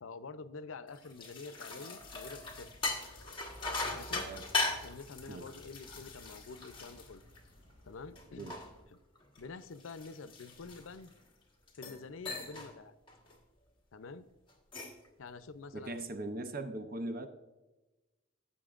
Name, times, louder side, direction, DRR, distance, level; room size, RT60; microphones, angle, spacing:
voice 1, 0.0-2.7 3.9-4.3 4.7-7.3 7.8-8.5 8.9-9.0 9.4-11.1 11.7-13.0 13.9-14.3 15.2-16.0, left 4 dB, 85° left, 13 dB, 0.6 m, -47 dB
sound 1, 0.9-7.7 8.2-11.2 11.7-12.0 12.3-12.7 13.1-13.4 14.5-15.1, left 3 dB, 25° left, 1.4 m, -39 dB
sound 2, 2.0-8.8, equal, 30° right, 3.2 m, -56 dB
voice 2, 4.1-4.5 5.3-5.5 8.4-8.5 15.7-17.3, right 2 dB, 45° right, 8 dB, 0.6 m, -40 dB
15.5 x 7.3 x 2.4 m, 1.1 s
head